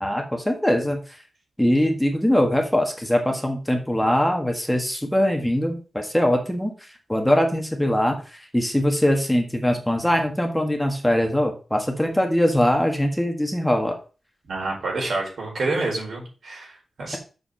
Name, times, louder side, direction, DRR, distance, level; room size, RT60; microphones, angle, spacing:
voice 1, 0.0-1.0 1.6-6.7 7.1-8.2 8.5-14.0, equal, 5° left, 3 dB, 1.7 m, -22 dB
voice 2, 14.5-17.2, right 2 dB, 80° right, -2 dB, 4.4 m, -28 dB
6.8 x 5.1 x 6.4 m, 0.35 s
wide cardioid pair, 130°, 0 cm